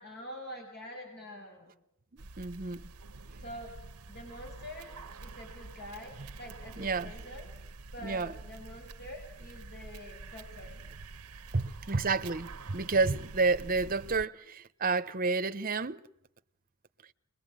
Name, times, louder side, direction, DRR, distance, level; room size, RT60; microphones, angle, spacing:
voice 1, 0.0-1.7 3.4-3.7 4.1-4.9 5.2-7.5 7.9-10.8, left 1 dB, 50° left, 6.2 m, -46 dB
voice 2, 2.1-2.9 6.8-7.1 8.0-8.4 11.5-16.0, right 4 dB, 40° right, 1.0 m, -30 dB
sound 1, 2.2-14.3, right 3 dB, 90° right, 1.0 m, -47 dB
30.0 x 22.0 x 9.0 m
head